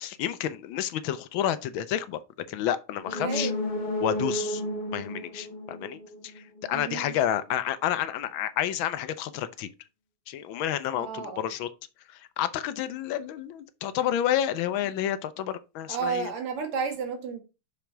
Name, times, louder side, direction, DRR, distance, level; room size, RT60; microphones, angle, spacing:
voice 1, 0.0-2.2 2.5-3.5 4.0-4.6 4.9-9.7 10.3-11.7 12.1-16.3, left 11 dB, 75° left, 1.3 m, -30 dB
sound 1, 3.0-6.7 7.0-7.1, left 1 dB, 30° left, 0.9 m, -32 dB
voice 2, 3.1-3.6 6.7-7.1 10.9-11.5 15.9-17.4, right 6 dB, 90° right, 2.4 m, -32 dB
5.9 x 5.2 x 4.4 m
omnidirectional pair, 2.4 m